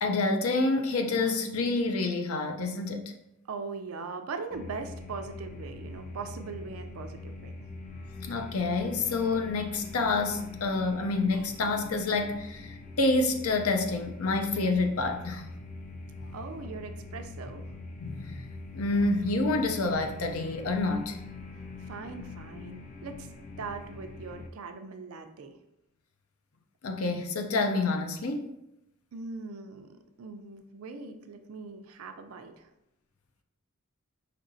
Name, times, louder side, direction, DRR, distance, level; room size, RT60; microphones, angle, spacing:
voice 1, 0.0-3.1 8.2-15.4 18.0-18.5 18.7-21.2 26.8-28.5, left 3 dB, 85° left, 5 dB, 0.5 m, -28 dB
voice 2, 3.5-7.5 16.3-17.6 21.8-23.3 23.6-25.6 29.1-32.7, right 4 dB, 85° right, 7 dB, 0.4 m, -40 dB
sound 1, 4.5-24.5, left 3 dB, 35° left, 0.5 m, -43 dB
5.2 x 2.8 x 2.6 m, 0.86 s
head